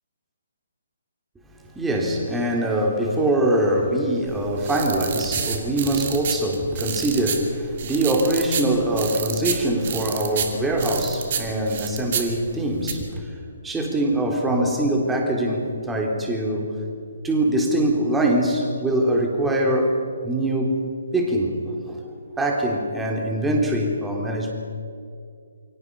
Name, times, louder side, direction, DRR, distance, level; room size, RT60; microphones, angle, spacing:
voice 1, 1.8-13.3 13.6-16.7 17.2-20.0 20.2-20.8 21.1-22.0 22.4-24.5, right 1 dB, 5° right, 1 dB, 3.6 m, -23 dB
sound 1, 4.3-12.9, right 7 dB, 45° right, 2.7 m, -30 dB
28.5 x 24.0 x 5.5 m, 2.4 s
figure-of-eight pair, 140°, 0 cm